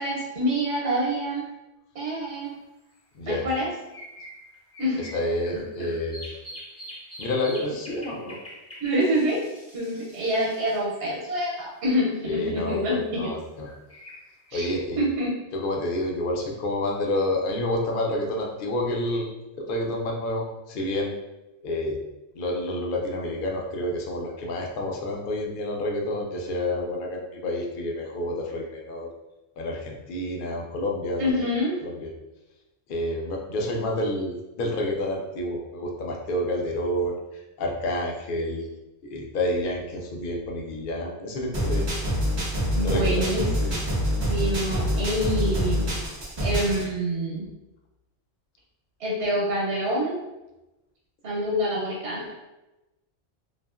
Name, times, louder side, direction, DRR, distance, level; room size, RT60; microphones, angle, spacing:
voice 1, 0.0-1.4 1.9-2.5 3.3-3.7 4.8-5.0 5.5-5.6 8.8-9.4 9.7-13.3 14.5-14.6 15.0-15.4 31.2-31.7 42.7-43.4 44.3-45.9 46.4-47.5 49.0-50.2 51.2-52.3, equal, 75° right, -4 dB, 1.0 m, -26 dB
sound 1, 2.5-2.6 3.5-11.9 13.1-14.7, equal, 20° left, 0.5 m, -44 dB
voice 2, 3.1-3.5 5.0-6.3 7.2-8.4 12.2-13.7 14.5-15.1 15.5-21.2 21.6-22.0 22.3-29.1 29.6-31.3 31.8-32.1 32.9-38.7 39.1-41.9 42.8-43.3 43.6-43.8 46.8-46.9, left 1 dB, 60° left, 0 dB, 0.6 m, -29 dB
sound 2, 41.5-46.8, equal, 35° right, 0.5 m, -26 dB
2.7 x 2.4 x 2.3 m, 0.99 s
omnidirectional pair, 1.1 m